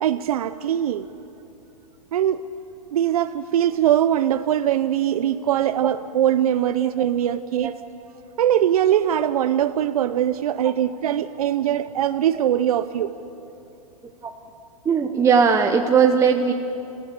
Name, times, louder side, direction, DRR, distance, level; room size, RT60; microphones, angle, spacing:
voice 1, 0.0-1.1 2.1-2.4 2.9-7.7 8.4-13.1, right 10 dB, 75° right, 11 dB, 0.7 m, -21 dB
voice 2, 14.8-16.5, right 6 dB, 15° right, 4 dB, 0.9 m, -19 dB
26.5 x 16.0 x 8.3 m, 2.8 s
hypercardioid pair, 135°, 19 cm